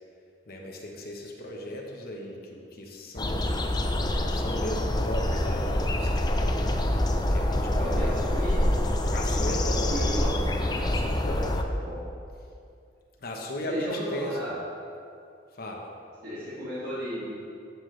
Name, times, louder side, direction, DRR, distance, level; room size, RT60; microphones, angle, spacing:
voice 1, 0.5-3.6 4.3-6.6 7.3-8.1 9.1-9.9 10.8-11.5 13.2-14.4 15.5-15.9, left 1 dB, 55° left, 0 dB, 1.0 m, -37 dB
sound 1, 3.2-11.6, left 1 dB, 25° left, 0.6 m, -26 dB
voice 2, 7.7-8.6 9.9-10.4 11.3-11.5 11.8-12.0 13.7-14.5 16.2-17.3, equal, 65° right, -10 dB, 2.3 m, -34 dB
11.5 x 7.2 x 3.3 m, 2.4 s
head